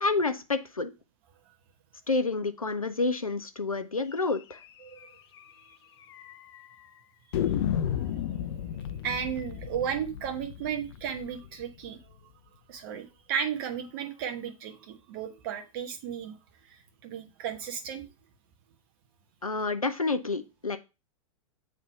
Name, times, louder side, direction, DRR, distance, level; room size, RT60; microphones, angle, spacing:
voice 1, 0.0-0.9 2.1-4.6 19.4-20.8, left 3 dB, 85° left, 0.7 m, -29 dB
sound 1, 4.5-4.7 5.0-5.1 5.4-5.5 6.1-6.6 7.3-12.1, left 10 dB, 50° left, 0.5 m, -33 dB
voice 2, 9.0-12.0 12.7-16.4 17.0-18.0, right 8 dB, 40° right, 1.2 m, -34 dB
7.8 x 3.4 x 4.4 m
figure-of-eight pair, 100°, 18 cm